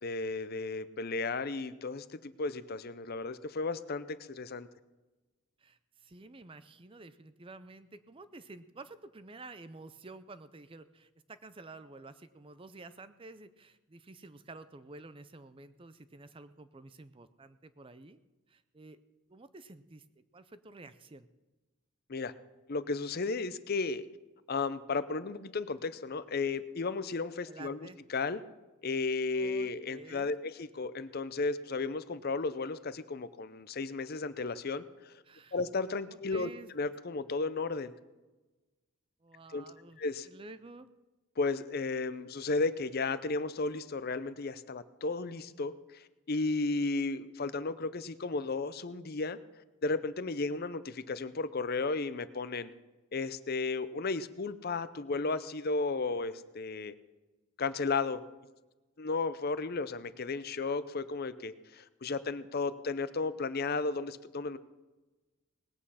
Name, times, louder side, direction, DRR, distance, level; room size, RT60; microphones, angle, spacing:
voice 1, 0.0-4.7 22.1-22.3 22.7-24.1 24.5-27.8 28.1-28.4 28.8-35.2 35.5-36.5 36.7-37.9 39.5-39.6 40.0-40.3 41.4-49.4 49.8-52.7 53.1-56.9 57.6-58.2 59.0-64.6, left 3 dB, 45° left, 14 dB, 0.6 m, -34 dB
voice 2, 5.6-18.2 18.5-19.0 19.3-20.0 20.3-21.3 27.5-28.0 29.3-30.3 35.2-35.6 36.1-36.7 39.2-40.9, right 3 dB, 25° right, 13 dB, 0.5 m, -51 dB
19.0 x 8.7 x 5.6 m, 1.1 s
head